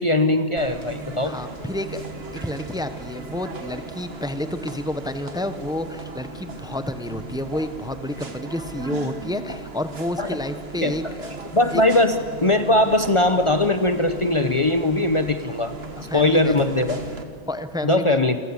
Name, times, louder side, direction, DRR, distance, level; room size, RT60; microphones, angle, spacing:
voice 1, 0.0-1.4 10.2-10.4 10.8-10.9 11.5-15.7 16.1-17.0 17.8-18.4, left 2 dB, 30° left, 8 dB, 0.9 m, -20 dB
sound 1, 0.6-17.2, right 3 dB, 70° right, 2.1 m, -37 dB
voice 2, 1.2-2.0 2.3-11.4 11.7-11.8 16.0-16.6 17.5-18.2, left 1 dB, 5° right, 10 dB, 1.0 m, -30 dB
28.5 x 23.0 x 8.1 m, 2.1 s
omnidirectional pair, 1.1 m